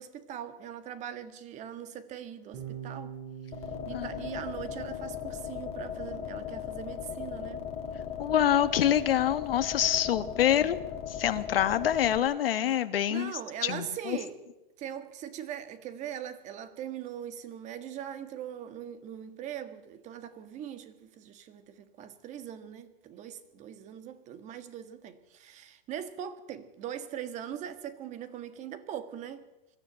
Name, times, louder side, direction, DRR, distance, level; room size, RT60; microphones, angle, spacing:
voice 1, 0.0-3.2 3.9-7.6 10.5-10.9 13.1-14.4 14.8-29.5, right 9 dB, 25° right, 1.6 m, -41 dB
Bass guitar, 2.5-8.8, right 8 dB, 40° right, 7.3 m, -47 dB
sound 1, 3.5-12.2, left 8 dB, 20° left, 2.1 m, -38 dB
voice 2, 8.2-10.8 11.1-13.3 13.6-14.2, left 10 dB, 75° left, 1.6 m, -26 dB
22.0 x 13.5 x 9.0 m
hypercardioid pair, 150°, 29 cm